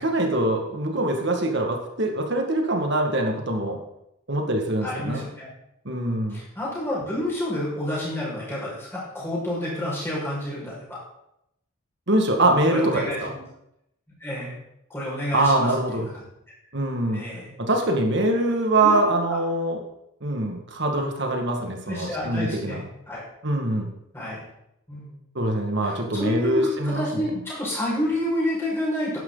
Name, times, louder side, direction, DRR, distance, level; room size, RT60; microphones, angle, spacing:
voice 1, 0.0-3.8 4.3-5.2 5.9-6.4 12.1-13.3 15.3-16.1 16.7-17.2 17.6-19.8 20.2-22.8 23.4-23.9 25.4-27.3, right 1 dB, 55° right, 2 dB, 2.0 m, -23 dB
voice 2, 4.8-5.5 6.3-11.0 12.7-13.4 14.2-14.6 14.9-16.0 17.1-17.5 18.8-19.4 21.9-22.8 23.1-23.2 24.1-24.5 24.9-25.2 25.8-29.2, left 1 dB, 10° left, -7 dB, 5.7 m, -29 dB
12.5 x 10.5 x 4.0 m, 0.80 s
head